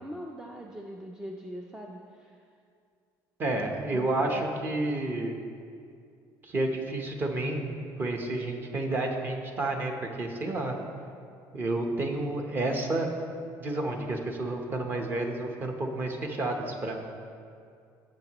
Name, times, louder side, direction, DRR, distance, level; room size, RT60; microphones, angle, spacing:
voice 1, 0.0-2.5 3.9-4.8, equal, 10° right, 0 dB, 0.4 m, -42 dB
voice 2, 3.4-5.4 6.4-9.9 10.2-10.7 11.5-13.1 13.6-17.0, right 2 dB, 25° right, 3 dB, 0.9 m, -30 dB
15.5 x 7.3 x 3.0 m, 2.3 s
cardioid pair, 170°, 8 cm